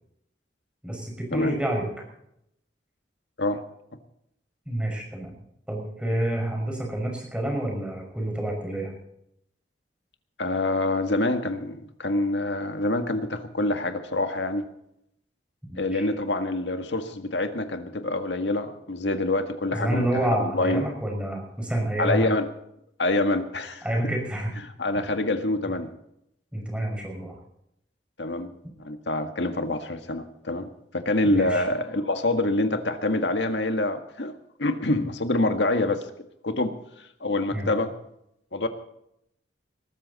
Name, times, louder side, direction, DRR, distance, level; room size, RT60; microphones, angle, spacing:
voice 1, 0.8-1.9 4.7-5.3 5.7-8.9 15.7-16.1 19.7-22.3 23.8-24.5 26.5-27.3 31.2-31.6 37.5-37.7, right 1 dB, 5° right, 1 dB, 5.8 m, -28 dB
voice 2, 10.4-14.7 15.8-20.9 22.0-22.5 23.0-23.8 24.6-25.9 28.2-28.5 28.8-30.7 30.9-34.3 34.6-36.1 36.4-36.7 37.2-37.9 38.5-38.7, left 2 dB, 85° left, 7 dB, 1.7 m, -26 dB
20.5 x 13.5 x 4.2 m, 0.77 s
head